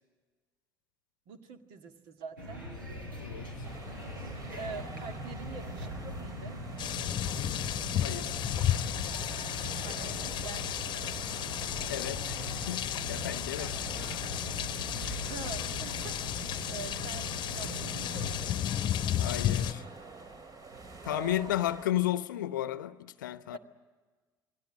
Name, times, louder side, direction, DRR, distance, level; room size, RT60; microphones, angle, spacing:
voice 1, 1.3-2.7 4.6-6.6 9.8-11.1 13.6-13.8 15.2-18.5 21.0-21.5 23.5-23.6, right 4 dB, 60° right, 2.0 m, -45 dB
sound 1, 2.4-18.6, equal, 75° right, 6.0 m, -41 dB
sound 2, 3.6-21.9, right 3 dB, 35° right, 2.5 m, -49 dB
sound 3, 6.8-19.7, left 11 dB, 45° left, 1.0 m, -33 dB
voice 2, 8.0-8.5 11.9-13.7 19.2-19.8 21.0-23.6, left 13 dB, 70° left, 0.9 m, -33 dB
29.0 x 21.5 x 8.9 m
figure-of-eight pair, 55°, 11 cm